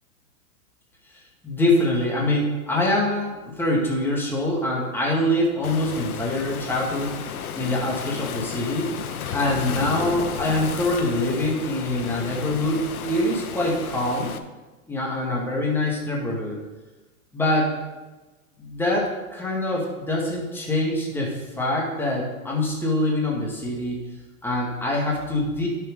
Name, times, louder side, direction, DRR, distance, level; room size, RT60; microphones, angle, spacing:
voice 1, 1.4-7.2 7.6-8.9 9.3-14.3 14.9-16.6 17.3-17.8 18.6-24.0 24.4-25.7, left 1 dB, 5° left, -3 dB, 1.9 m, -24 dB
Waves surf, 5.6-14.4, left 7 dB, 80° left, 1.0 m, -33 dB
11.0 x 6.3 x 5.2 m, 1.2 s
hypercardioid pair, 135°, 43 cm